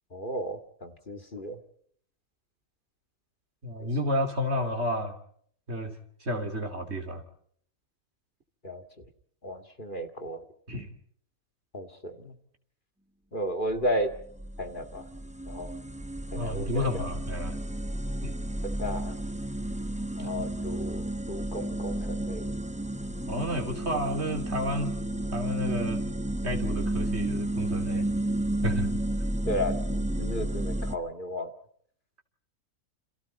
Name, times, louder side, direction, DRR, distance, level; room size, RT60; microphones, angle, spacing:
voice 1, 0.1-1.6 3.8-3.9 8.6-8.8 9.4-10.4 11.7-12.3 13.3-14.1 14.6-15.0 15.5-15.7 16.3-17.1 18.6-19.2 20.2-22.5 29.5-31.5, equal, 35° left, 6 dB, 2.2 m, -34 dB
voice 2, 3.6-5.1 5.7-6.0 6.2-7.2 10.7-10.9 16.3-17.6 18.2-18.4 20.2-20.3 23.3-25.0 25.3-26.0 26.4-28.1 28.6-28.9, equal, 45° right, 6 dB, 3.4 m, -31 dB
sound 1, 13.7-31.0, right 1 dB, 5° right, 0.6 m, -32 dB
29.5 x 28.0 x 4.3 m, 0.63 s
omnidirectional pair, 1.6 m